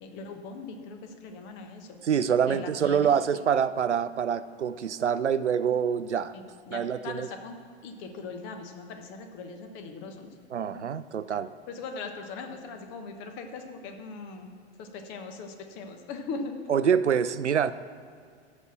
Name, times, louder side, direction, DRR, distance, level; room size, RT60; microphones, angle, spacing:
voice 1, 0.0-2.0 2.5-3.1 6.3-10.3 10.7-10.8 11.7-14.5 14.8-16.5, left 4 dB, 35° left, 5 dB, 1.2 m, -40 dB
voice 2, 2.0-6.3 6.7-7.3 10.5-11.5 16.7-17.7, right 7 dB, 85° right, 14 dB, 0.5 m, -26 dB
13.0 x 4.5 x 7.2 m, 2.2 s
figure-of-eight pair, 100°, 34 cm